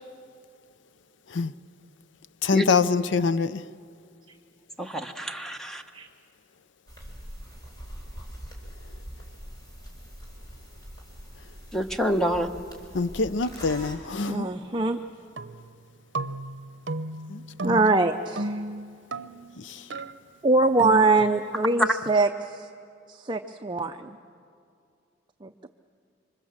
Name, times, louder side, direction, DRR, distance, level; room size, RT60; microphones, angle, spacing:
voice 1, 2.4-3.7 12.9-14.5 17.3-17.8 19.6-19.9, left 4 dB, 75° left, 0.6 m, -25 dB
voice 2, 4.8-5.8 11.7-12.5 21.8-21.9, equal, 5° left, 1.0 m, -26 dB
sound 1, 6.9-14.0, equal, 20° left, 4.0 m, -43 dB
voice 3, 14.3-15.0 17.6-18.6 20.4-22.3 23.2-24.2 25.4-25.7, right 3 dB, 25° right, 0.6 m, -23 dB
sound 2, 15.4-15.8 16.1-19.6 19.9-20.2 20.8-21.5, right 2 dB, 65° right, 0.8 m, -34 dB
27.0 x 24.5 x 7.3 m
head